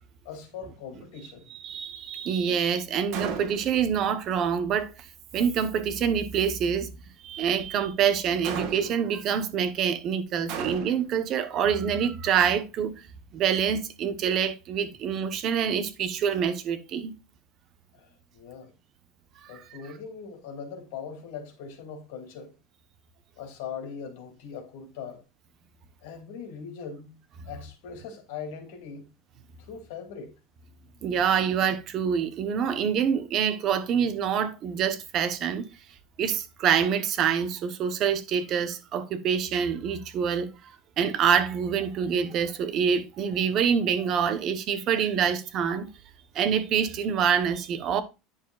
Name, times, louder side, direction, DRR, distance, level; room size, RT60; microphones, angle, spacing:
voice 1, 0.2-1.5 17.9-18.7 19.5-22.5 23.4-25.2 26.0-27.1 27.4-29.1 29.7-30.4, left 6 dB, 75° left, 2.6 m, -40 dB
voice 2, 1.5-4.9 5.3-6.9 7.2-13.0 13.3-17.1 19.4-19.6 31.0-35.6 36.2-40.5 41.0-45.9 46.3-48.0, right 7 dB, 40° right, 1.0 m, -26 dB
Gunshot gunfire, 3.1-3.8 8.4-9.1 10.5-11.2, right 7 dB, 55° right, 2.0 m, -34 dB
10.0 x 6.6 x 2.4 m
cardioid pair, 155°, 0 cm